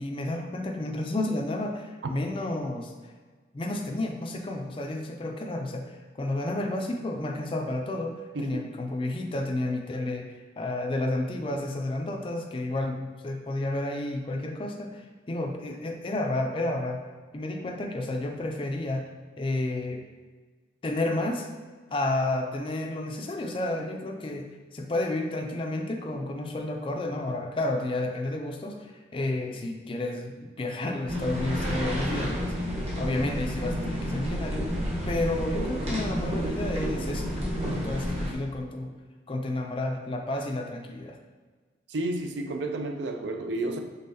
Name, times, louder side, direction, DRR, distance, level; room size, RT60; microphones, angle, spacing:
voice 1, 0.0-2.9 3.5-17.0 17.3-19.1 19.4-20.0 20.8-21.5 21.9-34.7 35.1-38.9 39.3-41.2, left 2 dB, 30° left, 2 dB, 0.4 m, -31 dB
sound 1, 31.1-38.3, equal, 35° right, 1.0 m, -30 dB
voice 2, 41.9-43.8, right 2 dB, 70° right, 5 dB, 0.5 m, -31 dB
5.5 x 3.5 x 2.7 m, 1.4 s
head